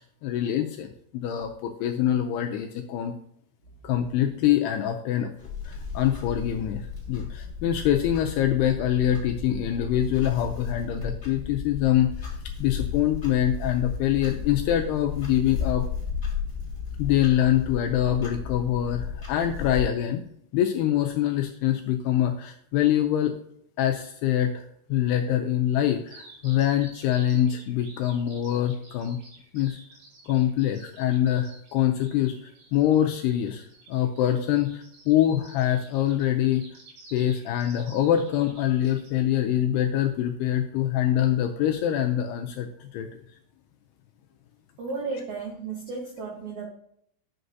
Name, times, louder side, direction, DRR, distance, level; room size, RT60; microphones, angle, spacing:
voice 1, 0.0-3.1 3.8-5.3 5.7-6.8 7.1-15.9 17.0-20.2 20.5-23.4 23.8-24.5 24.9-29.2 29.5-29.8 30.3-36.6 37.1-43.1, left 11 dB, 85° left, 5 dB, 2.4 m, -24 dB
Clock, 5.4-19.9, left 7 dB, 10° left, 2.5 m, -34 dB
Bird vocalization bird call bird song, 26.1-39.1, right 3 dB, 90° right, 5.1 m, -51 dB
voice 2, 44.8-46.7, right 4 dB, 70° right, -2 dB, 1.8 m, -34 dB
11.0 x 7.9 x 2.7 m, 0.69 s
omnidirectional pair, 5.2 m